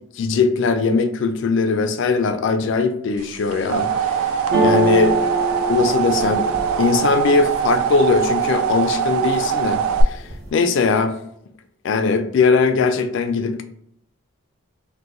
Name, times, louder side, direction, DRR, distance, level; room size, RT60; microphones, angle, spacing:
voice 1, 0.2-5.2 5.7-6.5 6.8-11.1 11.8-13.6, left 4 dB, 60° left, 8 dB, 0.3 m, -20 dB
sound 1, 3.3-10.0, right 8 dB, 85° right, 0.3 m, -22 dB
sound 2, 4.5-8.4 8.8-9.4 9.7-10.5, right 1 dB, 55° right, 0.8 m, -25 dB
2.7 x 2.1 x 3.6 m, 0.71 s
head